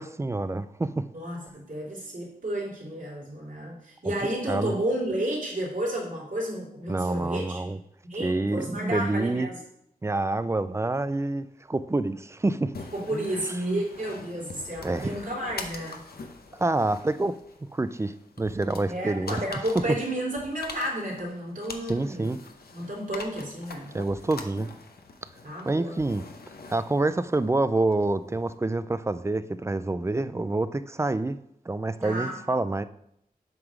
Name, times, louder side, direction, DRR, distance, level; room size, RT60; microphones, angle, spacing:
voice 1, 0.0-1.1 4.0-4.1 4.5-4.7 6.9-7.8 8.2-9.5 10.0-12.7 13.1-13.3 13.6-13.8 14.8-15.2 16.5-19.4 19.7-20.0 21.9-22.4 23.9-24.7 25.7-26.2 26.7-31.4 31.7-32.8, right 2 dB, 15° right, 13 dB, 0.3 m, -27 dB
voice 2, 1.1-7.6 8.0-9.6 12.9-16.0 18.9-22.3 22.7-23.9 25.4-26.0 32.0-32.4, right 1 dB, 55° right, -4 dB, 2.9 m, -32 dB
sound 1, 12.7-28.5, left 3 dB, 75° left, 0.8 m, -44 dB
8.0 x 3.7 x 6.0 m, 0.76 s
wide cardioid pair, 120°, 16 cm